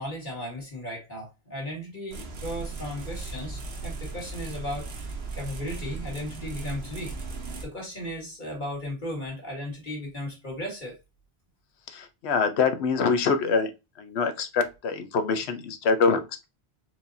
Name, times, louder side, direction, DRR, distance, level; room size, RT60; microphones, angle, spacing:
voice 1, 0.0-7.2 7.6-11.0, left 1 dB, 50° left, 2.0 m, -36 dB
sound 1, 2.1-7.6, right 3 dB, 70° right, 1.1 m, -37 dB
voice 2, 11.9-13.7 14.0-16.5, left 5 dB, 85° left, 1.0 m, -25 dB
4.5 x 2.8 x 2.6 m
omnidirectional pair, 1.1 m